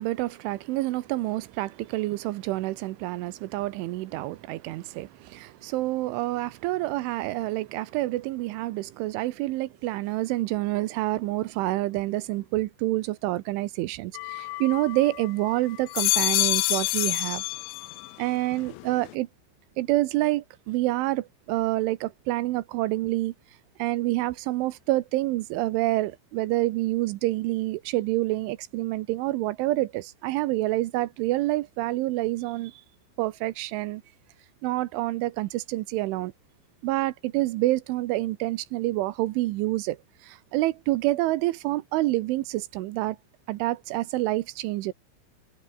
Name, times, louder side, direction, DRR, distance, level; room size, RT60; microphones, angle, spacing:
voice 1, 0.0-17.4 18.2-19.3 19.8-23.3 23.8-32.8 33.2-34.0 34.6-36.3 36.8-43.2 43.5-44.9, right 17 dB, 75° right, 3.1 m, -27 dB
sound 1, 14.2-15.3 15.7-18.2 18.5-19.1, left 20 dB, 85° left, 2.7 m, -27 dB
omnidirectional pair, 6.0 m